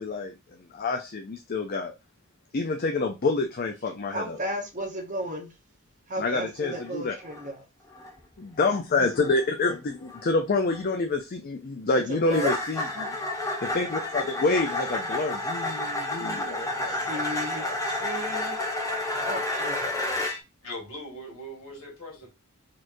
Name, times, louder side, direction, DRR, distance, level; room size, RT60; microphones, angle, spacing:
voice 1, 0.0-1.9 2.5-4.4 6.2-7.1 8.4-17.2 17.6-18.1, left 3 dB, 40° left, 0.4 m, -28 dB
voice 2, 4.1-5.5 6.1-7.6 12.1-12.5 16.9-18.5 19.3-19.9, right 1 dB, 35° right, 1.0 m, -34 dB
sound 1, 6.6-6.9 7.2-7.6 7.9-8.2 8.6-8.8 9.2-9.4 10.1-10.2 10.6-10.8 12.3-20.4, left 2 dB, 15° left, 0.7 m, -30 dB
voice 3, 20.6-22.3, equal, 65° left, 1.9 m, -40 dB
4.1 x 3.1 x 2.6 m
head